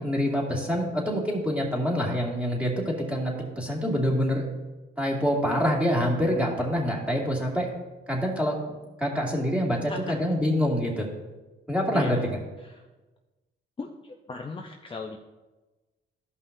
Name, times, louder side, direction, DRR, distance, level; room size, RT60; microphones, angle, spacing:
voice 1, 0.0-4.4 5.0-7.7 8.1-11.1 11.7-12.2, equal, 5° right, -3 dB, 2.2 m, -26 dB
voice 2, 9.9-10.2 11.9-12.2 12.6-12.8 13.8-15.2, left 4 dB, 25° left, 1 dB, 0.7 m, -38 dB
13.5 x 5.5 x 2.7 m, 1.2 s
cardioid pair, 90°, 20 cm